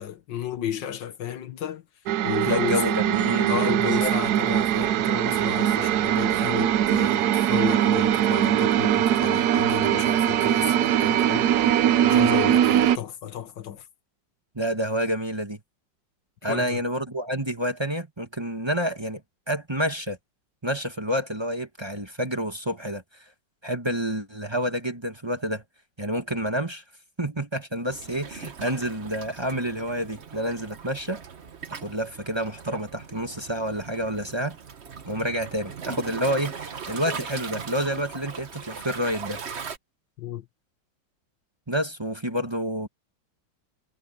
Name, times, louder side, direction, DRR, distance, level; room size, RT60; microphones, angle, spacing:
voice 1, 0.0-1.8 2.2-3.0 3.5-11.5 12.1-13.9 16.5-16.8 40.2-40.5, left 10 dB, 90° left, 1.8 m, -32 dB
sound 1, 2.1-13.0, right 11 dB, 70° right, 1.1 m, -21 dB
voice 2, 2.5-4.1 12.0-12.3 14.5-15.6 16.4-19.2 19.5-20.2 20.6-23.0 23.6-25.6 26.0-26.8 27.2-31.2 31.7-34.6 35.0-39.4 41.7-42.9, equal, 15° right, 1.6 m, -28 dB
Waves surf, 27.9-39.8, right 6 dB, 40° right, 1.3 m, -39 dB
omnidirectional pair, 1.9 m